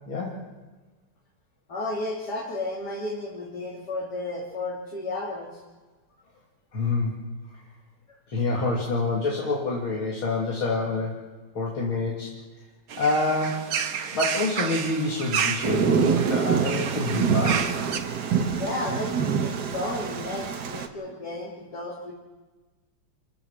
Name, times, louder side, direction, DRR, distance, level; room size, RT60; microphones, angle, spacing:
voice 1, 1.7-5.5 18.6-22.1, left 2 dB, 50° left, -4 dB, 3.3 m, -33 dB
voice 2, 6.7-7.2 8.3-11.2 11.6-12.3 13.0-13.7 14.1-17.7, left 3 dB, 75° left, -3 dB, 3.6 m, -27 dB
sound 1, 12.9-18.0, right 7 dB, 80° right, 2.1 m, -31 dB
Thunder, 15.6-20.9, right 7 dB, 55° right, 1.8 m, -26 dB
27.0 x 14.5 x 7.3 m, 1.3 s
omnidirectional pair, 2.3 m